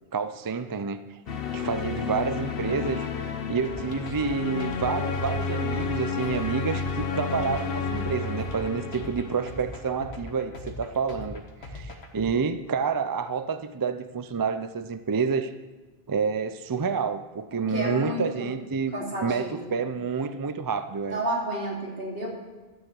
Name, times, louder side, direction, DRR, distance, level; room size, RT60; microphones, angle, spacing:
voice 1, 0.1-1.2 1.5-3.1 3.5-15.5 16.1-18.9 19.2-21.2, right 5 dB, 35° right, 11 dB, 0.3 m, -29 dB
sound 1, 1.3-10.1, left 4 dB, 65° left, 1.1 m, -31 dB
sound 2, 3.6-12.3, left 2 dB, 90° left, 1.7 m, -40 dB
voice 2, 17.5-18.2 18.9-19.8 21.1-22.3, right 1 dB, 65° right, -2 dB, 2.9 m, -31 dB
12.5 x 6.8 x 7.5 m, 1.2 s
omnidirectional pair, 1.0 m